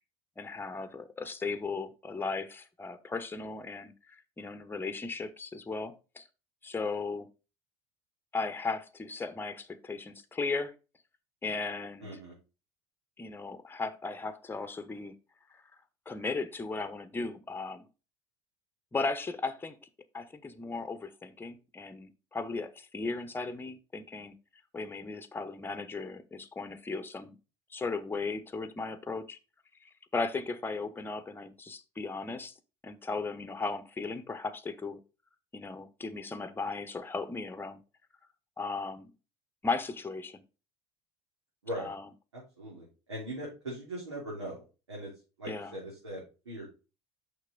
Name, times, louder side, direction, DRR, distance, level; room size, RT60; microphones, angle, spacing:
voice 1, 0.4-6.3 6.6-7.3 8.3-10.7 11.4-12.1 13.2-15.2 15.5-15.6 16.1-17.9 18.9-19.8 20.1-24.4 24.7-27.4 27.7-29.4 29.8-32.5 32.8-35.0 35.5-37.8 38.6-39.1 39.6-40.4 41.8-42.0 45.5-45.7, left 3 dB, 15° left, 1.0 m, -36 dB
voice 2, 12.0-12.3 41.6-41.9 42.3-45.1 45.4-46.7, right 1 dB, 85° right, 3.3 m, -40 dB
6.5 x 6.0 x 3.8 m
hypercardioid pair, 70°, 14 cm